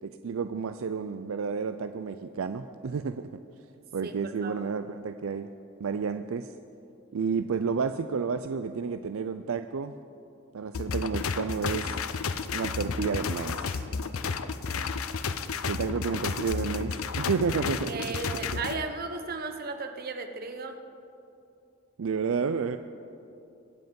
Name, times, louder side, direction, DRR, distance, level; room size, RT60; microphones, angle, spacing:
voice 1, 0.0-3.3 3.9-5.5 5.8-6.5 7.1-9.9 10.5-12.0 12.5-13.9 15.7-18.1 18.5-18.6 22.0-22.8, right 5 dB, 70° right, 9 dB, 0.4 m, -31 dB
voice 2, 4.0-4.7 17.9-20.8, right 4 dB, 45° right, 6 dB, 1.0 m, -35 dB
sound 1, 10.7-18.7, left 5 dB, 80° left, 0.6 m, -32 dB
23.5 x 7.9 x 5.3 m, 2.7 s
head